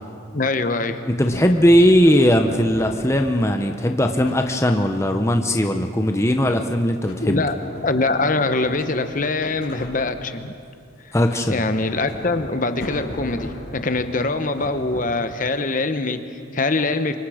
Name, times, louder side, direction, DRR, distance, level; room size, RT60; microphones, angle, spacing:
voice 1, 0.3-1.0 7.2-7.6 7.8-10.5 11.0-11.1 11.4-17.2, left 3 dB, 40° left, 9 dB, 1.0 m, -23 dB
voice 2, 1.1-7.4 11.1-11.6, equal, 15° left, 4 dB, 0.8 m, -18 dB
Sliding door, 1.3-4.8 6.9-10.4 11.0-15.4, left 1 dB, 65° left, 5.5 m, -38 dB
28.0 x 25.0 x 5.0 m, 2.3 s
head